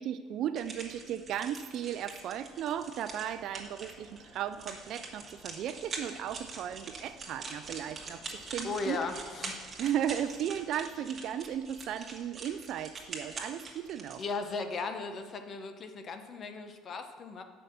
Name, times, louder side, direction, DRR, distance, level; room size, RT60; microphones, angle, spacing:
voice 1, 0.0-9.0 9.8-14.2, right 10 dB, 60° right, 11 dB, 0.3 m, -35 dB
sound 1, 0.6-14.2, right 4 dB, 35° right, 1.7 m, -44 dB
Mechanisms, 0.9-13.3, right 1 dB, 10° right, 1.8 m, -59 dB
voice 2, 8.6-9.6 14.2-17.4, left 4 dB, 45° left, 7 dB, 0.8 m, -37 dB
6.4 x 5.5 x 6.6 m, 1.5 s
supercardioid pair, 95°, 0 cm